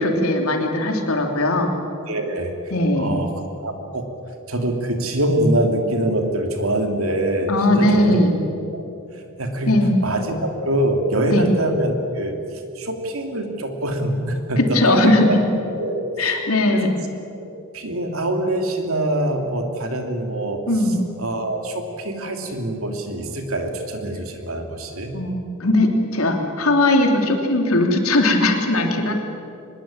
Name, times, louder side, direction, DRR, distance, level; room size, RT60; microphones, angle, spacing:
voice 1, 0.0-1.7 2.7-3.2 7.5-8.3 9.7-9.9 11.3-11.4 14.6-15.4 16.2-16.9 20.7-21.0 25.1-29.1, left 1 dB, 85° left, 3 dB, 3.4 m, -19 dB
voice 2, 2.1-2.5 3.0-3.3 3.6-4.1 4.5-8.8 9.4-15.4 15.7-16.0 16.7-17.1 17.7-20.6 21.2-25.1, right 1 dB, 80° right, 4 dB, 3.2 m, -24 dB
24.0 x 21.5 x 9.0 m, 2.7 s
head